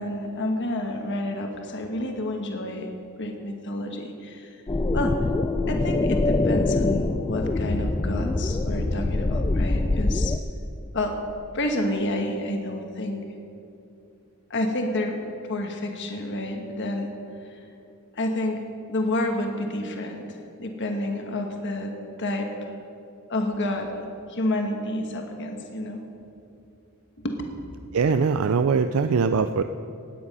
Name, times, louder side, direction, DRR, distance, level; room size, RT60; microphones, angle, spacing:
voice 1, 0.0-2.9 3.2-4.6 4.9-5.2 5.7-10.3 10.9-11.2 11.5-13.2 14.5-17.1 17.4-17.6 18.1-18.6 18.9-21.9 22.2-22.5 23.3-26.0 27.2-27.3, left 1 dB, 55° left, 3 dB, 1.3 m, -29 dB
sound 1, 4.7-10.4, left 2 dB, 20° left, 0.3 m, -24 dB
voice 2, 27.9-29.6, right 5 dB, 70° right, 9 dB, 0.4 m, -22 dB
17.5 x 9.6 x 5.4 m, 2.7 s
head